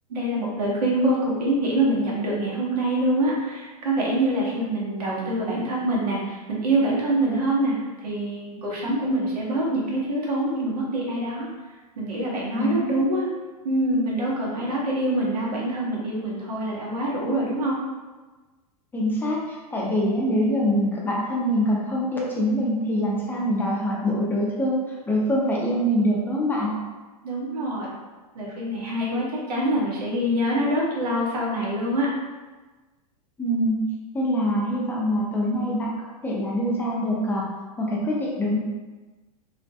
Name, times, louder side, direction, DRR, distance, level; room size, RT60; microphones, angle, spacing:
voice 1, 0.1-7.7 8.0-11.5 12.0-13.3 13.6-17.7 27.2-27.9 28.3-32.1, right 1 dB, 85° right, -4 dB, 0.9 m, -25 dB
voice 2, 18.9-24.8 25.1-26.7 33.4-33.8 34.1-38.6, equal, 10° left, -4 dB, 0.5 m, -24 dB
2.4 x 2.1 x 2.6 m, 1.2 s
hypercardioid pair, 115°, 20 cm